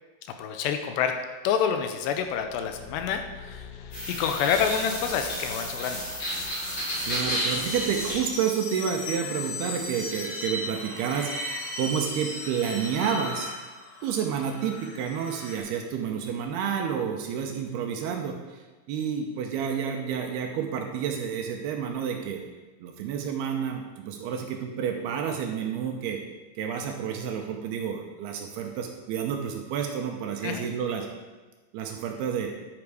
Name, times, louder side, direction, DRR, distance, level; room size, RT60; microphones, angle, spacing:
voice 1, 0.4-1.1 1.4-6.0 30.4-30.7, left 8 dB, 85° left, 6 dB, 2.8 m, -28 dB
Car / Engine, 2.0-6.5, left 7 dB, 65° left, 3.1 m, -46 dB
sound 1, 3.9-15.6, left 1 dB, 40° left, 4.0 m, -33 dB
voice 2, 7.0-13.5 14.0-18.6 18.9-22.4 22.8-26.2 26.6-31.1 31.7-32.5, right 7 dB, 80° right, 3 dB, 2.7 m, -30 dB
11.0 x 8.9 x 4.8 m, 1.3 s
omnidirectional pair, 5.0 m